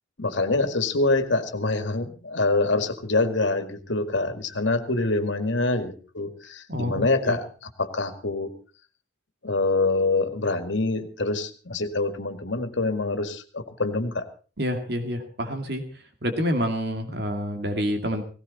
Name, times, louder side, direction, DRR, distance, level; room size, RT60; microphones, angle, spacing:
voice 1, 0.2-8.5 9.4-14.3, left 2 dB, 85° left, 8 dB, 2.0 m, -25 dB
voice 2, 6.7-7.4 14.6-15.8 16.2-18.2, equal, 60° right, 5 dB, 2.2 m, -27 dB
18.0 x 17.5 x 4.1 m, 0.38 s
head